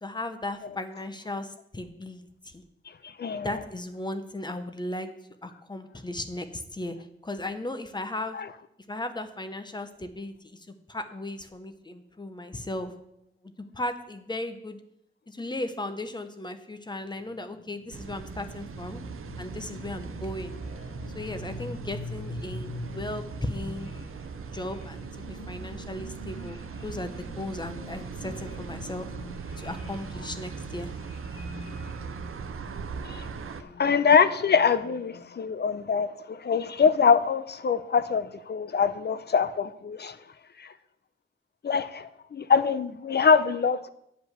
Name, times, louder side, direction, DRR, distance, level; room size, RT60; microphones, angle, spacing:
voice 1, 0.0-2.6 3.4-5.1 5.4-7.0 7.2-8.4 8.9-12.9 13.7-14.8 15.3-19.0 19.4-20.6 21.1-23.9 24.5-29.1 29.6-30.9, left 1 dB, 20° left, 0.9 m, -36 dB
voice 2, 3.0-3.5 8.3-8.5 33.0-33.3 33.6-40.2 40.6-40.7 41.6-43.9, left 6 dB, 50° left, 0.6 m, -24 dB
sound 1, 17.1-35.4, left 2 dB, 75° left, 1.5 m, -44 dB
sound 2, 17.9-33.6, right 5 dB, 85° right, 0.7 m, -39 dB
9.9 x 5.1 x 8.1 m
wide cardioid pair, 145°, 21 cm